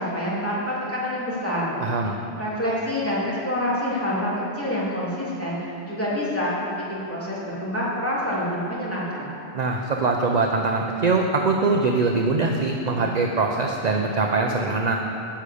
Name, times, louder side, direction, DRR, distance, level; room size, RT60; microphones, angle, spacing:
voice 1, 0.0-1.7 2.4-6.5 6.9-9.4, equal, 10° left, -8 dB, 2.8 m, -27 dB
voice 2, 1.8-2.2 9.5-15.0, right 3 dB, 45° right, 2 dB, 0.7 m, -22 dB
10.5 x 6.3 x 8.4 m, 2.9 s
omnidirectional pair, 1.2 m